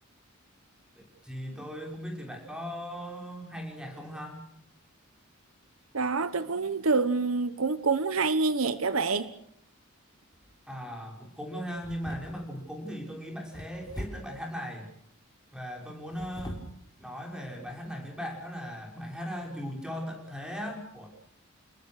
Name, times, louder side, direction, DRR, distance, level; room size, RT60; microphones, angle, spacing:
voice 1, 0.9-4.4 10.7-14.9 15.5-16.6 17.0-21.1, equal, 5° right, 6.0 m, -38 dB
voice 2, 5.9-9.3, right 4 dB, 75° right, 1.1 m, -27 dB
sound 1, 10.3-10.7 11.7-12.6 13.5-14.4 16.0-16.8 17.4-17.5 18.0-18.2, equal, 20° left, 4.2 m, -42 dB
29.0 x 20.5 x 6.4 m
head